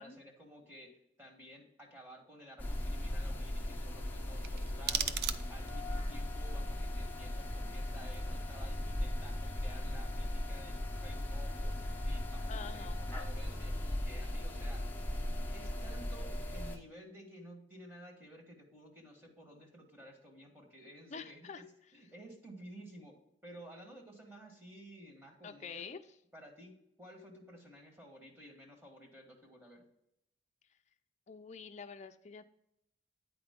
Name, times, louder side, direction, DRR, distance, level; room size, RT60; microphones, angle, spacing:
voice 1, 0.0-11.7 12.0-14.9 15.5-21.6 21.9-25.8 26.3-26.7 27.0-29.8, equal, 15° right, 1 dB, 1.4 m, -54 dB
sound 1, 2.6-16.8, left 1 dB, 10° left, 0.8 m, -37 dB
sound 2, 4.4-5.9, right 9 dB, 60° right, 0.4 m, -37 dB
voice 2, 12.5-13.2 21.1-21.6 25.4-26.0 31.3-32.4, left 5 dB, 40° left, 7 dB, 0.5 m, -47 dB
8.9 x 4.8 x 3.6 m, 0.79 s
head